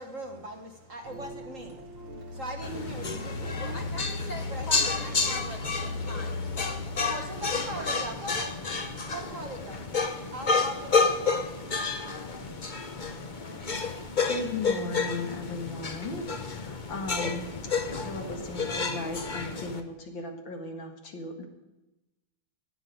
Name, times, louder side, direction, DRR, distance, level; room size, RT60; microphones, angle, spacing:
voice 1, 0.0-3.9 4.5-5.4 7.0-11.4, right 1 dB, 45° right, 3 dB, 1.5 m, -41 dB
sound 1, 1.0-18.1, equal, 70° right, 2.2 m, -50 dB
sound 2, 1.5-9.8, left 3 dB, 10° right, 2.6 m, -39 dB
sound 3, 2.6-19.8, left 4 dB, 35° left, 0.7 m, -31 dB
voice 2, 3.6-8.1, left 2 dB, 20° left, 2 dB, 2.1 m, -42 dB
voice 3, 14.2-17.5 18.0-21.4, left 2 dB, 70° left, 3 dB, 2.6 m, -36 dB
18.0 x 6.1 x 9.3 m, 1.0 s
omnidirectional pair, 2.2 m